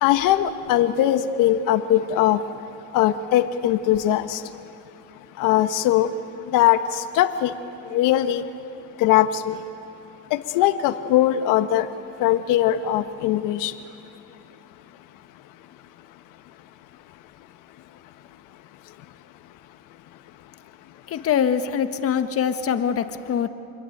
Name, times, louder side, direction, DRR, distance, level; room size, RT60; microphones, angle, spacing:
voice 1, 0.0-2.4 2.9-4.4 5.4-6.1 6.5-7.5 7.9-8.4 9.0-9.6 10.3-11.9 12.2-13.7, left 12 dB, 70° left, 8 dB, 1.4 m, -20 dB
voice 2, 21.1-23.5, left 8 dB, 45° left, 8 dB, 1.5 m, -23 dB
27.5 x 22.0 x 9.3 m, 2.7 s
supercardioid pair, 115°, 33 cm